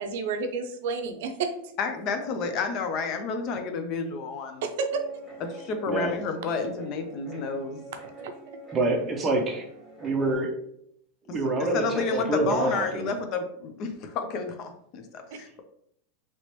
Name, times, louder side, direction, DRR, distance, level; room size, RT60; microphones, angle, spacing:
voice 1, 0.0-1.7 4.6-5.0 8.0-8.3 15.3-15.4, right 4 dB, 70° right, 6 dB, 0.5 m, -31 dB
voice 2, 1.8-4.6 5.5-7.8 11.7-15.6, left 4 dB, 40° left, 6 dB, 0.4 m, -30 dB
Guitar, 4.9-10.4, right 2 dB, 5° left, 1.2 m, -44 dB
voice 3, 8.7-9.7 10.0-10.5 11.3-13.1, right 2 dB, 20° right, 2 dB, 0.6 m, -26 dB
2.9 x 2.9 x 3.0 m, 0.70 s
supercardioid pair, 155°, 0 cm